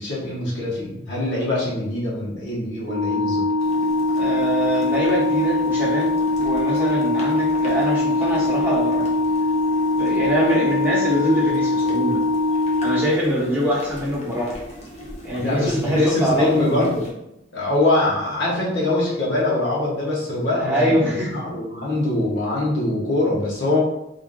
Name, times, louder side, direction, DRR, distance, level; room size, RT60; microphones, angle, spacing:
voice 1, 0.0-3.4 15.4-17.1 17.5-23.8, left 2 dB, 70° left, -5 dB, 1.2 m, -23 dB
Organ, 2.8-13.7, left 2 dB, 45° right, 0.7 m, -22 dB
sound 1, 3.6-17.1, left 1 dB, 35° left, 0.8 m, -39 dB
voice 2, 4.2-6.1 6.4-9.1 10.0-12.2 12.8-14.6 15.2-16.6 20.6-21.4, equal, 10° right, -8 dB, 1.1 m, -24 dB
3.6 x 2.4 x 3.8 m, 0.85 s
head